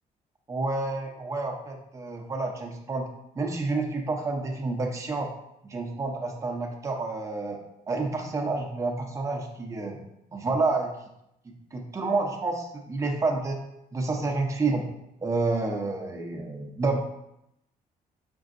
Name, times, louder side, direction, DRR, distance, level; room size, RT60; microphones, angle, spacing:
voice 1, 0.5-3.1 3.4-5.3 5.6-7.6 7.9-10.0 10.3-10.9 11.7-13.6 13.9-14.8 15.2-17.0, right 3 dB, 20° right, 1 dB, 0.6 m, -29 dB
5.3 x 3.7 x 2.5 m, 0.81 s
cardioid pair, 140°, 15 cm